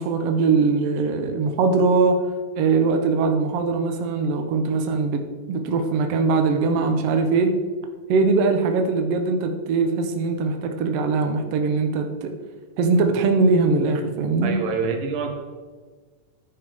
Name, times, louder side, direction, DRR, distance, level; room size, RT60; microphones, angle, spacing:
voice 1, 0.0-2.2 2.6-5.2 5.5-7.5 8.1-12.3 12.8-14.6, right 4 dB, 85° right, 5 dB, 1.3 m, -21 dB
voice 2, 14.4-15.3, right 5 dB, 65° right, 3 dB, 2.7 m, -26 dB
10.5 x 10.0 x 3.5 m, 1.4 s
omnidirectional pair, 4.2 m